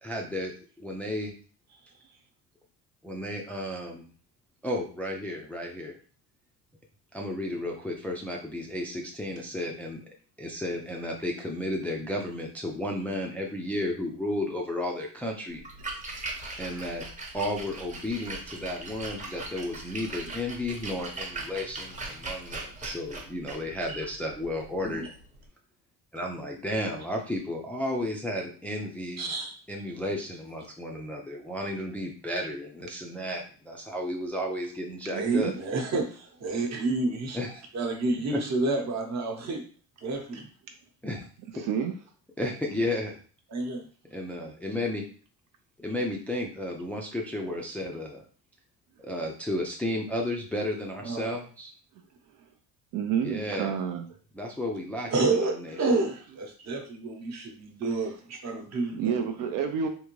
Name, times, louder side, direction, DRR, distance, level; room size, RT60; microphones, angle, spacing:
voice 1, 0.0-1.3 3.0-4.0 4.6-6.0 7.1-10.0 10.4-15.6 16.6-17.1 17.3-25.1 26.1-29.3 29.7-35.5 37.3-37.6 38.3-38.4 41.0-41.3 41.5-41.6 42.4-43.2 44.1-45.0 45.8-48.2 49.0-51.7 53.2-53.7 54.3-55.1 55.4-55.9, left 1 dB, 5° left, 0 dB, 0.4 m, -33 dB
Splash splatter, 15.5-25.5, right 2 dB, 20° right, 0.8 m, -40 dB
voice 2, 29.2-29.5 35.1-37.4 37.7-39.6 40.0-40.4 43.5-43.8 51.0-51.3 55.1-59.0, right 3 dB, 45° right, 2 dB, 0.9 m, -29 dB
voice 3, 35.0-35.5 41.5-41.9 52.3-52.5 52.9-54.2 58.0-58.1 58.9-59.9, right 7 dB, 60° right, 5 dB, 0.5 m, -29 dB
3.6 x 2.5 x 3.0 m, 0.40 s
cardioid pair, 130°, 36 cm